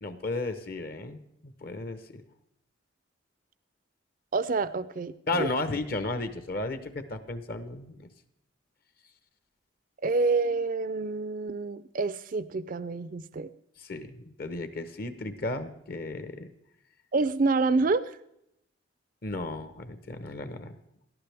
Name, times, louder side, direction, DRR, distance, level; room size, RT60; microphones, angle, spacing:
voice 1, 0.0-2.2 5.3-8.1 13.8-16.5 19.2-20.8, left 2 dB, 50° left, 10 dB, 0.9 m, -34 dB
voice 2, 4.3-5.5 10.0-13.5 17.1-18.0, right 3 dB, 45° right, 14 dB, 0.4 m, -27 dB
18.0 x 12.0 x 3.4 m, 0.78 s
head